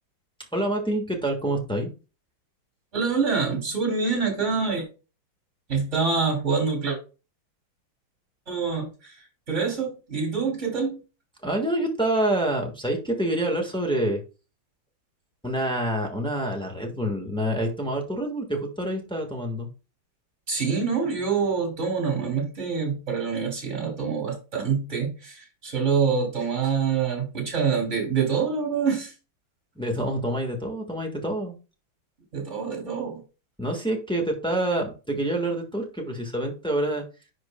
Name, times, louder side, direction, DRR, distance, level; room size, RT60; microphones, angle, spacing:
voice 1, 0.5-1.9 11.4-14.2 15.4-19.7 29.8-31.5 33.6-37.0, right 1 dB, 5° left, 1 dB, 1.0 m, -27 dB
voice 2, 2.9-4.8 5.7-7.0 8.5-9.1 9.5-11.0 20.5-29.1 32.3-33.2, right 5 dB, 35° right, 1 dB, 3.2 m, -26 dB
10.5 x 4.5 x 2.2 m, 0.32 s
omnidirectional pair, 2.3 m